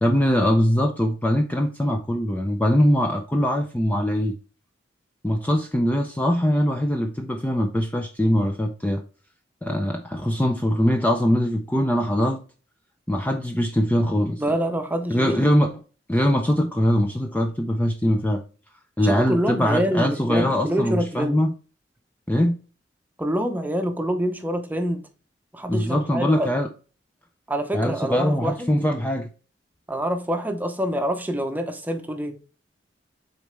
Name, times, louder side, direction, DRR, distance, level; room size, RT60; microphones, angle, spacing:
voice 1, 0.0-4.4 5.2-9.0 9.6-12.4 13.1-14.4 15.1-15.8 16.1-18.4 19.0-21.5 22.3-22.6 25.7-26.7 27.7-29.3, equal, 10° left, 0.5 m, -22 dB
voice 2, 14.4-15.6 19.0-21.4 23.2-25.0 25.5-26.5 27.5-28.7 29.9-32.4, equal, 10° right, 0.9 m, -26 dB
7.0 x 4.2 x 3.3 m
head